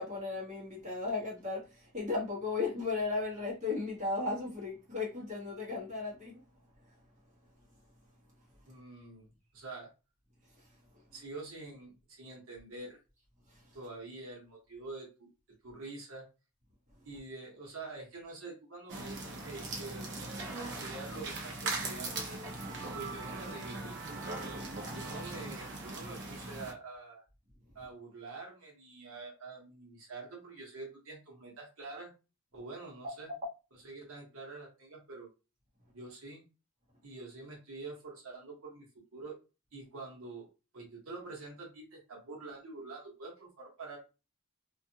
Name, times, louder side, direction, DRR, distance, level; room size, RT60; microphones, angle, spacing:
voice 1, 0.0-6.4, left 3 dB, 35° right, 1.1 m, -35 dB
voice 2, 8.7-9.3 9.5-9.9 11.1-13.0 13.7-15.3 15.6-16.2 17.0-22.2 22.9-24.0 24.9-27.2 27.7-32.1 32.5-33.3 33.8-35.3 35.9-36.4 37.0-39.4 39.7-40.5 40.7-44.0, right 3 dB, 75° right, 0.9 m, -46 dB
sound 1, 18.9-26.7, right 2 dB, 55° right, 0.6 m, -40 dB
2.5 x 2.4 x 2.7 m
head